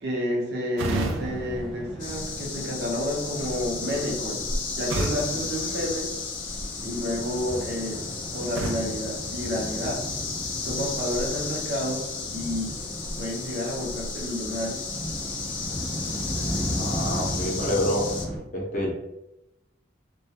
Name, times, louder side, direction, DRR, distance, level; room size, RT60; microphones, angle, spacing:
voice 1, 0.0-4.5 4.8-6.1 6.8-10.0 10.6-12.0 12.3-12.8 13.2-14.9, left 1 dB, 55° right, -2 dB, 0.6 m, -30 dB
sound 1, 0.8-2.7 4.9-6.6 8.5-10.2, right 2 dB, 90° right, 0.4 m, -34 dB
sound 2, 0.9-18.4, equal, ahead, 0.4 m, -36 dB
sound 3, 2.0-18.3, left 5 dB, 90° left, 0.5 m, -34 dB
voice 2, 16.8-18.0 18.5-18.9, equal, 40° left, -2 dB, 0.6 m, -27 dB
2.3 x 2.2 x 2.7 m, 0.92 s
head